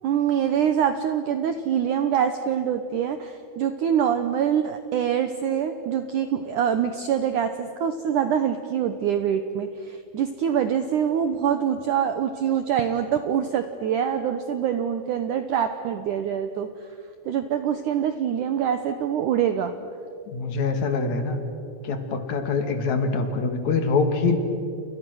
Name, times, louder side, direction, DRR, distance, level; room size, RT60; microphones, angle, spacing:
voice 1, 0.0-16.7 17.3-19.7, right 8 dB, 85° right, 9 dB, 1.7 m, -25 dB
voice 2, 20.3-21.4 21.8-24.4, left 4 dB, 50° left, 6 dB, 2.9 m, -24 dB
29.5 x 29.0 x 6.3 m, 2.4 s
omnidirectional pair, 5.1 m